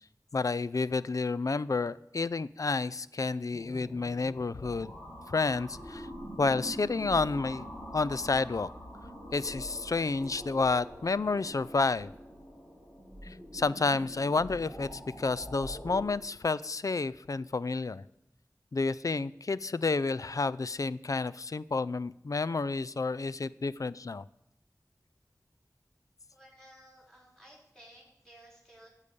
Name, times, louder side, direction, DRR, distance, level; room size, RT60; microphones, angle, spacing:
voice 1, 0.3-4.9 5.3-6.1 6.4-7.7 7.9-8.7 9.3-12.1 13.2-18.0 18.7-24.2, left 3 dB, 65° left, 17 dB, 0.4 m, -30 dB
sound 1, 3.5-16.0, equal, 45° left, 5.8 m, -44 dB
voice 2, 26.3-28.9, equal, 10° left, -3 dB, 5.0 m, -56 dB
13.5 x 8.3 x 5.2 m, 0.84 s
wide cardioid pair, 60°, 6 cm